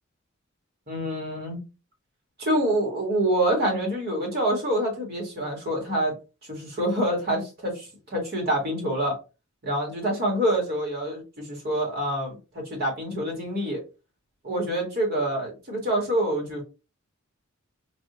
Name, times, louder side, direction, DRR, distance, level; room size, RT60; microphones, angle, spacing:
voice 1, 0.9-1.6 2.4-6.1 6.5-9.2 9.6-13.8 14.4-16.6, right 1 dB, 45° right, 1.4 m, -26 dB
3.3 x 2.5 x 2.7 m
head